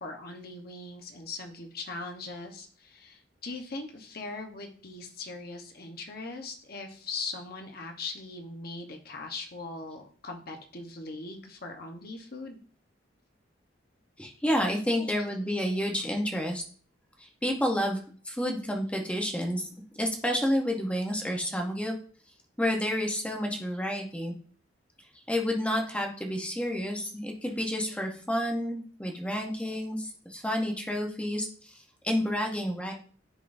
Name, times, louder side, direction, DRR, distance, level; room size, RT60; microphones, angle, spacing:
voice 1, 0.0-12.6 15.0-15.2 15.6-15.7, left 3 dB, 55° left, 3 dB, 1.0 m, -40 dB
voice 2, 14.2-16.6 17.2-18.0 18.3-19.7 20.0-22.0 22.6-24.3 25.3-31.7 32.0-32.9, equal, 5° left, 1 dB, 0.9 m, -30 dB
10.0 x 3.7 x 2.6 m, 0.43 s
head